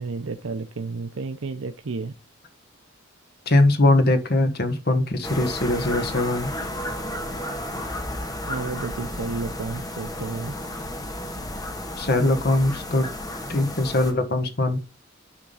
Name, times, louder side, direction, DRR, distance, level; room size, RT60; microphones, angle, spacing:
voice 1, 0.0-2.1 8.5-10.5, right 4 dB, 80° right, 0.7 m, -31 dB
voice 2, 3.5-6.5 12.0-13.1 13.5-14.8, left 2 dB, 50° left, 1.5 m, -21 dB
sound 1, 5.2-14.1, left 1 dB, 20° left, 1.5 m, -33 dB
10.0 x 3.6 x 5.6 m
head